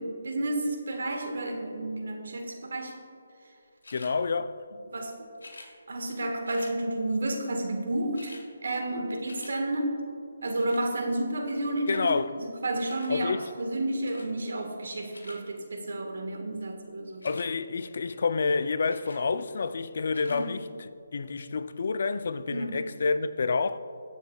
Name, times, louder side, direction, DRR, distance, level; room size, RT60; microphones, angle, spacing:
voice 1, 0.0-3.0 4.9-5.3 5.9-10.0 10.4-12.1 12.4-17.3 20.3-20.6 22.5-22.9, right 1 dB, 70° right, 1.6 m, -31 dB
sound 1, 3.8-4.1 5.3-5.7 6.4-6.8 7.7-7.8 8.0-8.5 8.8-9.6 10.6-10.9 11.9-12.2 12.9-13.2 14.0-14.3 14.9-15.4 17.1-17.5 18.9-19.2 20.0-20.4 21.1-21.2, left 2 dB, 90° left, 1.9 m, -48 dB
voice 2, 3.9-4.6 11.9-12.3 13.1-13.4 17.2-23.8, left 4 dB, 55° left, 0.4 m, -28 dB
20.5 x 7.1 x 2.4 m
hypercardioid pair, 160°, 0 cm